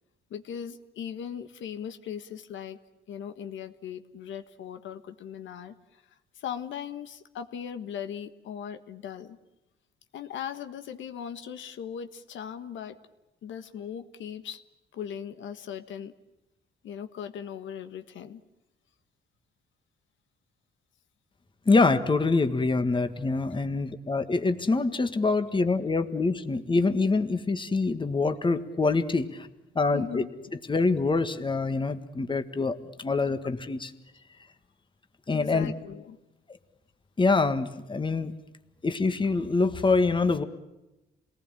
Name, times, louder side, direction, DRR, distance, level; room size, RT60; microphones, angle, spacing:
voice 1, 0.3-2.8 3.1-9.4 10.1-13.0 13.4-14.6 14.9-16.1 16.8-18.4 29.9-30.3 35.3-36.2, left 8 dB, 75° left, 8 dB, 1.5 m, -39 dB
voice 2, 21.6-29.5 29.7-30.2 30.7-33.9 35.3-35.7 37.2-38.3 38.8-40.4, left 3 dB, 25° left, 9 dB, 1.7 m, -25 dB
28.0 x 19.0 x 9.1 m, 0.99 s
cardioid pair, 90°, 20 cm